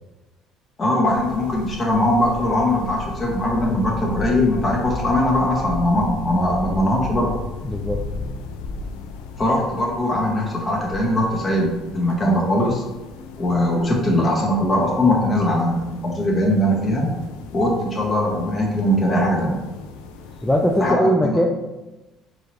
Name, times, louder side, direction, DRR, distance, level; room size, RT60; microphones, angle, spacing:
voice 1, 0.8-7.3 9.4-12.8 13.4-17.1 17.5-19.6 20.8-21.4, left 1 dB, 30° left, -1 dB, 1.4 m, -20 dB
sound 1, 1.0-20.9, left 3 dB, 90° left, 0.4 m, -36 dB
voice 2, 7.6-8.0 20.4-21.5, equal, 10° left, 1 dB, 0.4 m, -20 dB
4.6 x 2.8 x 3.2 m, 1.1 s
supercardioid pair, 80°, 0 cm